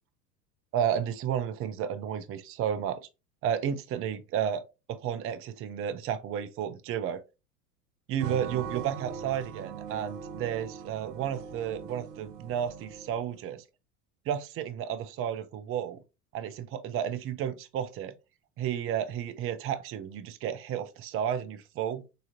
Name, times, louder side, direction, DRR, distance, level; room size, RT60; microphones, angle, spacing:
voice 1, 0.7-3.1 3.4-4.6 4.9-7.2 8.1-13.6 14.3-16.0 16.3-18.1 18.6-22.0, right 9 dB, 30° right, 0.6 m, -32 dB
sound 1, 8.2-13.3, right 7 dB, 85° right, 0.7 m, -41 dB
6.6 x 2.8 x 2.6 m
hypercardioid pair, 80°, 46 cm